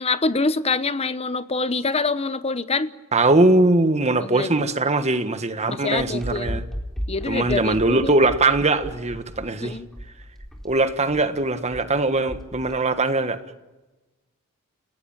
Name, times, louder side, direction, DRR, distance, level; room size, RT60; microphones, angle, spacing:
voice 1, 0.0-2.9 4.2-4.7 5.7-6.6 7.1-8.1 9.6-9.9, left 3 dB, 25° left, 1.0 m, -25 dB
voice 2, 3.1-6.6 7.3-9.8 10.6-13.4, right 2 dB, 30° right, 1.5 m, -21 dB
sound 1, 6.0-12.8, equal, ahead, 4.0 m, -35 dB
30.0 x 17.5 x 9.0 m
head